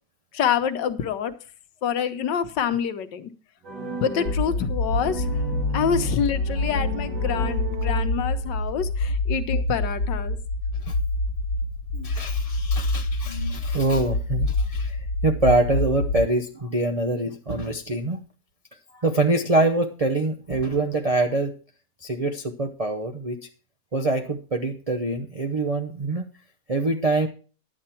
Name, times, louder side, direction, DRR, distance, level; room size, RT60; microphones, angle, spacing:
voice 1, 0.3-1.3 1.8-3.3 4.0-5.3 5.7-10.4, left 8 dB, 85° left, 10 dB, 1.5 m, -26 dB
sound 1, 3.6-8.6, right 3 dB, 70° right, 2.6 m, -35 dB
sound 2, 4.3-16.2, left 2 dB, 65° left, 1.4 m, -26 dB
voice 2, 11.9-18.2 18.9-21.5 22.0-23.5 23.9-26.2 26.7-27.3, right 2 dB, 50° right, 4 dB, 0.4 m, -25 dB
11.0 x 8.5 x 4.3 m, 0.38 s
omnidirectional pair, 1.9 m